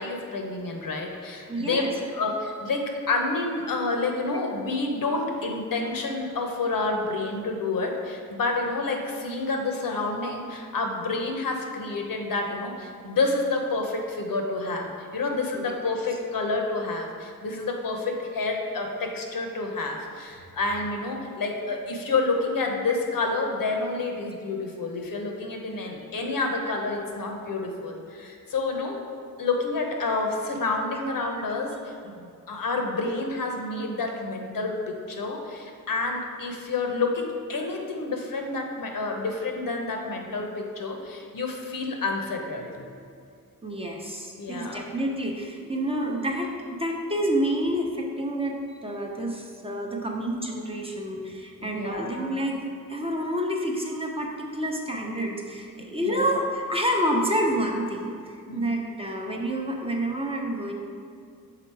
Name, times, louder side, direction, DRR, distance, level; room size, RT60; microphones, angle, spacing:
voice 1, 0.0-29.0 29.4-42.9 44.4-44.8 51.6-52.2 56.0-56.3 58.5-58.8, left 3 dB, 75° left, 2 dB, 0.8 m, -29 dB
voice 2, 1.5-1.9 15.5-15.8 43.6-52.6 52.9-60.7, equal, 15° right, 0 dB, 0.6 m, -28 dB
5.8 x 3.9 x 4.6 m, 2.3 s
wide cardioid pair, 95°, 34 cm